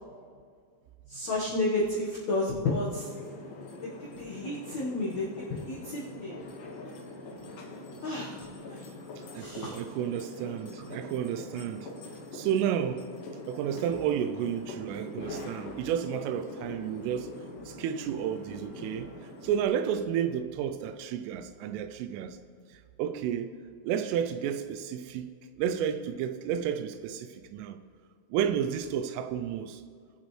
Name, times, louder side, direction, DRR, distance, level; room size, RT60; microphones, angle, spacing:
voice 1, 1.1-3.1 4.2-5.3 5.7-6.3 8.0-9.7, left 2 dB, 85° left, 1.5 m, -31 dB
sound 1, 2.9-19.7, left 2 dB, 60° left, 2.3 m, -44 dB
voice 2, 9.2-11.9 12.3-13.0 13.5-19.1 19.4-22.4 22.7-23.5 23.8-27.8 28.3-29.8, right 9 dB, 85° right, 3.1 m, -31 dB
21.5 x 8.1 x 3.3 m
omnidirectional pair, 5.7 m